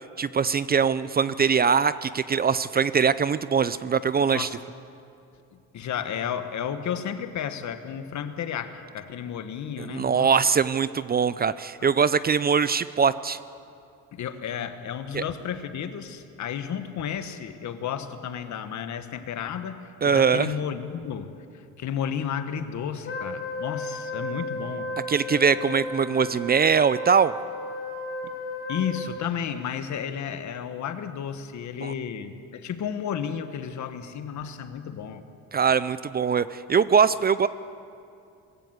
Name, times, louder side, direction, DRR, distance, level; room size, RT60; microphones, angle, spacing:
voice 1, 0.2-4.5 9.8-13.4 15.1-15.2 20.0-20.5 25.1-27.3 31.8-31.9 35.5-37.5, right 6 dB, 30° right, 16 dB, 0.5 m, -22 dB
voice 2, 5.5-10.3 11.8-11.9 14.1-24.9 28.2-28.3 28.7-35.2, left 8 dB, 60° left, 9 dB, 1.5 m, -32 dB
Wind instrument woodwind instrument, 23.0-29.3, left 2 dB, 40° left, 3.5 m, -34 dB
21.5 x 15.0 x 8.1 m, 2.5 s
cardioid pair, 95°, 33 cm